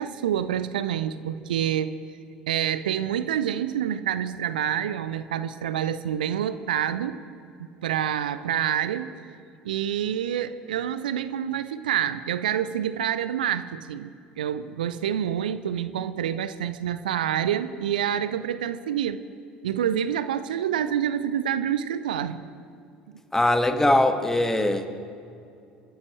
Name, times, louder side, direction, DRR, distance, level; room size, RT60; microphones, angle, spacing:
voice 1, 0.0-2.0 2.5-7.2 7.8-9.2 9.6-19.2 19.6-22.4 23.1-23.2, right 9 dB, 70° right, 13 dB, 0.6 m, -27 dB
voice 2, 23.3-24.9, left 1 dB, 10° left, 6 dB, 1.7 m, -21 dB
29.0 x 14.0 x 3.2 m, 2.5 s
figure-of-eight pair, 65°, 5 cm